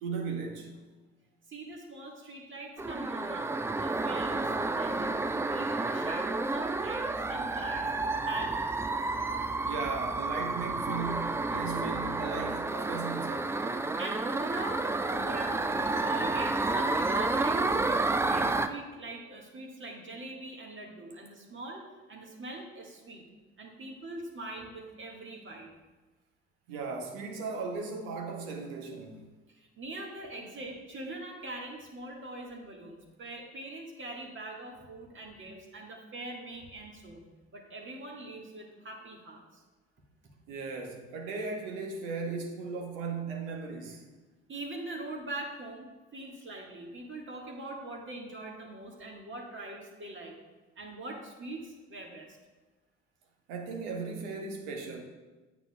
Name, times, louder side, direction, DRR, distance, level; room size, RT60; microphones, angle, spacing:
voice 1, 0.0-0.7 9.6-13.5 26.7-29.2 40.5-44.0 53.5-55.0, right 4 dB, 70° right, 1.2 m, -37 dB
voice 2, 1.5-3.5 3.8-7.9 8.3-8.9 14.0-14.8 15.1-21.8 22.1-23.2 23.6-25.7 29.5-39.6 44.5-50.4 50.8-52.3, right 2 dB, 35° right, 1.7 m, -43 dB
sound 1, 2.8-18.7, right 3 dB, 10° right, 0.3 m, -30 dB
8.9 x 7.9 x 2.3 m
hypercardioid pair, 55°, 33 cm